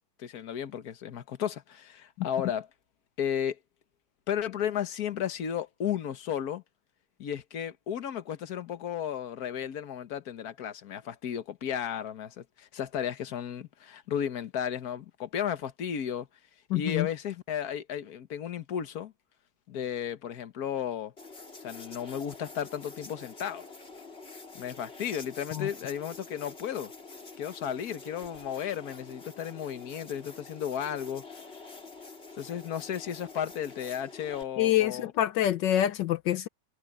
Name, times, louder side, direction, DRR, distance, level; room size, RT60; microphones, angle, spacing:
voice 1, 0.2-2.7 3.2-3.6 4.3-6.6 7.2-16.3 16.7-19.1 19.7-21.1 21.6-23.6 24.5-26.9 27.4-31.2 32.4-35.1, left 9 dB, 60° left, 1.7 m, -34 dB
voice 2, 16.7-17.1 25.5-25.7 34.6-36.5, left 12 dB, 80° left, 1.5 m, -26 dB
sound 1, 21.2-34.4, left 3 dB, 35° left, 3.7 m, -47 dB
omnidirectional pair, 1.9 m